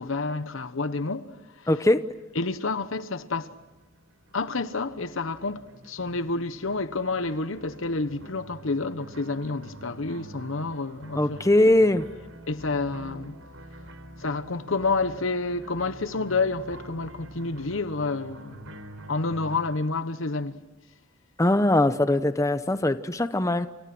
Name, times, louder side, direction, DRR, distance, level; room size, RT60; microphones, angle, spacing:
voice 1, 0.0-1.7 2.3-3.5 4.3-11.7 12.5-13.4 14.2-18.7 19.1-20.5, left 3 dB, 65° left, 1.1 m, -29 dB
voice 2, 1.7-2.0 11.1-12.0 21.4-23.7, left 1 dB, 15° left, 0.8 m, -21 dB
sound 1, 3.5-19.6, right 1 dB, 85° right, 3.9 m, -46 dB
29.5 x 29.0 x 6.2 m
head